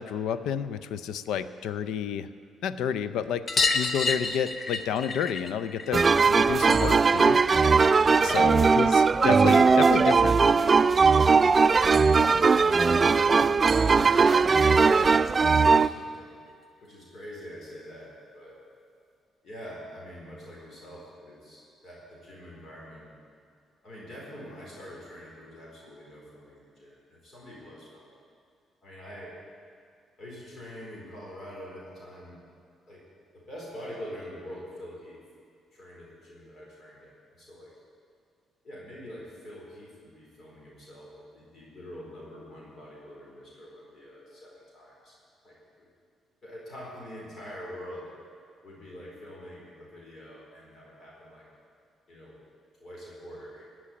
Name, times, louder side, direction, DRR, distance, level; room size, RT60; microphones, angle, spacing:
voice 1, 0.0-2.3 2.6-7.4 8.2-10.4, left 8 dB, 85° left, 13 dB, 0.5 m, -30 dB
sound 1, 3.5-8.6 8.9-10.0 11.4-11.5 11.7-11.8 12.1-12.2 13.5-13.6 13.9-14.0 14.3-14.4 15.6-15.7 16.5-16.6, left 4 dB, 40° left, 0.8 m, -31 dB
sound 2, 5.9-15.9, right 4 dB, 35° right, 0.3 m, -20 dB
voice 2, 8.1-8.5 11.9-16.3 16.8-18.6 19.4-23.1 23.8-28.1 28.8-29.4 30.2-32.4 32.9-33.0 33.3-35.2 35.7-37.8 38.6-45.2 45.4-45.9 46.4-48.1 48.6-51.5 52.1-52.4 52.8-53.7, equal, 55° left, -4 dB, 4.3 m, -45 dB
17.0 x 6.2 x 10.0 m, 2.2 s
cardioid pair, 90°, 0 cm